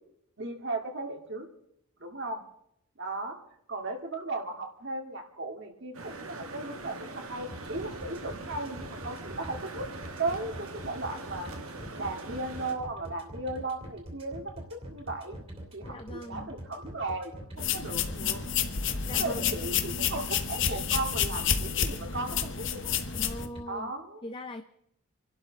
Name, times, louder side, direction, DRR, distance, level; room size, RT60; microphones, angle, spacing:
voice 1, 0.4-1.5 2.0-2.4 3.0-3.4 3.7-9.9 10.2-11.5 12.0-15.4 15.7-18.5 19.1-22.9 23.7-24.2, right 2 dB, 55° right, 3 dB, 2.2 m, -36 dB
sound 1, 5.9-12.7, right 2 dB, 70° right, 1.9 m, -42 dB
sound 2, 7.5-23.6, right 1 dB, 25° right, 2.8 m, -43 dB
voice 2, 15.9-16.5 18.1-18.4 18.8-19.6 23.1-23.9 24.2-24.6, left 1 dB, 25° left, 7 dB, 0.6 m, -41 dB
sound 3, 17.6-23.5, left 8 dB, 55° left, 1.0 m, -30 dB
28.0 x 12.0 x 4.0 m, 0.75 s
head